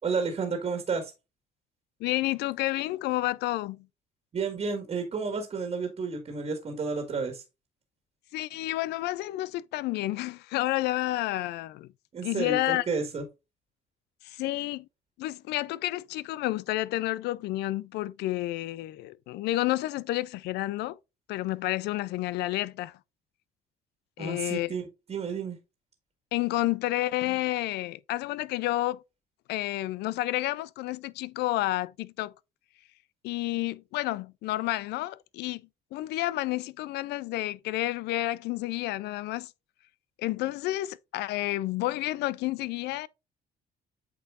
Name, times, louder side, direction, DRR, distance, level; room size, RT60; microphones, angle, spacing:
voice 1, 0.0-1.1 4.3-7.4 12.1-13.2 24.2-25.6, right 4 dB, 35° right, 1.7 m, -31 dB
voice 2, 2.0-3.9 8.3-11.9 12.2-12.8 14.2-14.9 15.2-21.0 21.3-23.0 24.2-24.7 26.3-29.0 29.5-32.3 33.2-35.6 35.9-39.5 40.2-43.1, left 17 dB, 80° left, 0.5 m, -30 dB
8.2 x 4.7 x 2.5 m
cardioid pair, 110°, 17 cm